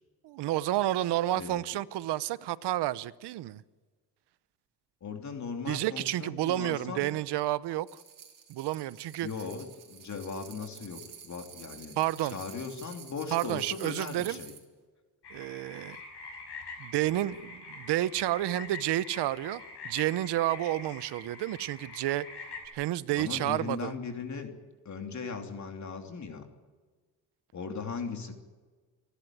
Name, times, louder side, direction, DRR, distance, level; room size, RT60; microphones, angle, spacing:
voice 1, 0.2-3.6 5.7-7.9 8.5-9.3 12.0-12.4 13.3-14.4 15.3-16.0 16.8-22.2 22.7-23.9, right 14 dB, 85° right, 0.9 m, -30 dB
voice 2, 5.0-7.1 9.2-14.5 23.2-24.5 24.8-26.4 27.5-28.3, left 5 dB, 45° left, 3.0 m, -38 dB
sound 1, 7.9-14.6, right 7 dB, 55° right, 4.1 m, -50 dB
sound 2, 15.2-22.7, left 3 dB, 85° left, 5.7 m, -45 dB
29.0 x 11.5 x 9.2 m
cardioid pair, 115°, 40 cm